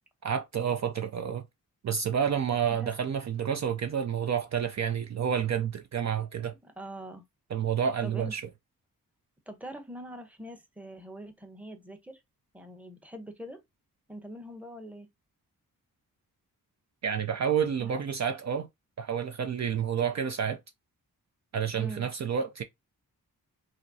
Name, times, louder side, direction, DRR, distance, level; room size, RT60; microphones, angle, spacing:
voice 1, 0.2-1.5 1.8-6.5 7.5-8.4 17.0-18.7 19.0-20.6 21.5-22.6, right 8 dB, 50° right, 0.5 m, -29 dB
voice 2, 6.6-7.2 8.0-8.3 9.5-12.2 12.5-13.6 14.1-15.1 17.8-18.0 21.7-22.1, right 1 dB, 5° right, 0.8 m, -43 dB
4.9 x 2.0 x 2.7 m
cardioid pair, 70°, 37 cm